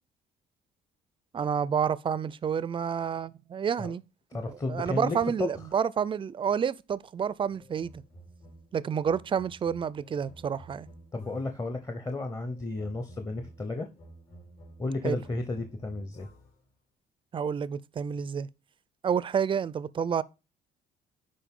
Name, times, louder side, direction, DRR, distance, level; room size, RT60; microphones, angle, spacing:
voice 1, 1.3-4.0 4.5-7.9 8.7-10.9 15.0-15.2 17.3-18.5 19.0-20.2, right 7 dB, 30° right, 0.4 m, -29 dB
voice 2, 4.3-5.5 11.1-13.9 14.8-16.3, left 2 dB, 20° left, 0.9 m, -33 dB
sound 1, 7.5-11.7 12.4-16.7, right 1 dB, 65° left, 4.5 m, -52 dB
10.5 x 4.4 x 3.7 m
cardioid pair, 110°, 17 cm